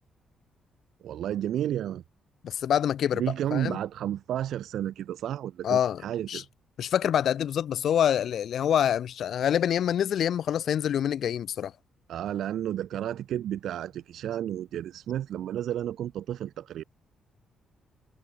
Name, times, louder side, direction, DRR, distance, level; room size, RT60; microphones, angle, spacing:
voice 1, 1.0-2.0 3.1-6.5 12.1-16.8, right 11 dB, 75° right, 5.1 m, -32 dB
voice 2, 2.4-3.2 3.5-3.8 5.6-6.0 6.3-6.4 6.8-11.7, left 9 dB, 65° left, 7.1 m, -26 dB
cardioid pair, 125°, 0 cm